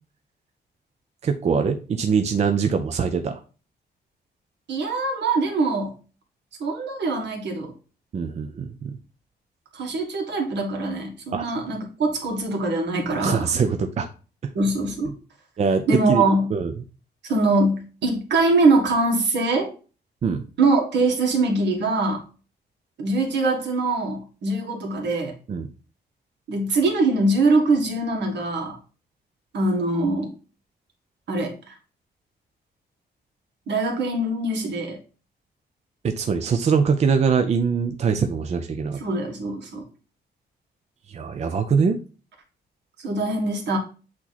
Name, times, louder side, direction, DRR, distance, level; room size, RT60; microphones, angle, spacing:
voice 1, 1.2-3.4 8.1-9.0 11.3-11.5 13.2-14.1 15.6-16.7 20.2-20.5 25.5-25.7 36.0-39.0 41.1-42.0, right 6 dB, 40° right, 6 dB, 0.5 m, -23 dB
voice 2, 4.7-6.0 6.6-7.7 9.7-13.5 14.6-15.1 15.9-16.5 17.2-19.7 20.6-22.2 23.0-25.4 26.5-28.8 29.5-30.3 31.3-31.7 33.7-35.0 39.0-39.8 43.0-43.8, right 2 dB, 80° right, 2 dB, 1.7 m, -23 dB
8.5 x 3.0 x 4.0 m, 0.36 s
wide cardioid pair, 150°, 18 cm